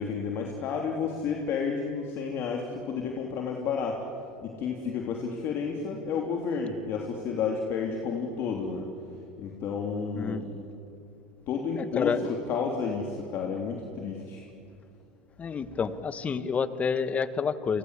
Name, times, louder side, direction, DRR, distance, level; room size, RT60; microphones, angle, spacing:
voice 1, 0.0-4.0 4.4-8.8 9.4-10.5 11.5-14.5, left 5 dB, 50° left, 1 dB, 3.4 m, -31 dB
voice 2, 11.8-12.3 15.4-17.8, left 6 dB, 25° left, 13 dB, 1.5 m, -29 dB
30.0 x 24.0 x 8.4 m, 2.5 s
supercardioid pair, 115°, 5 cm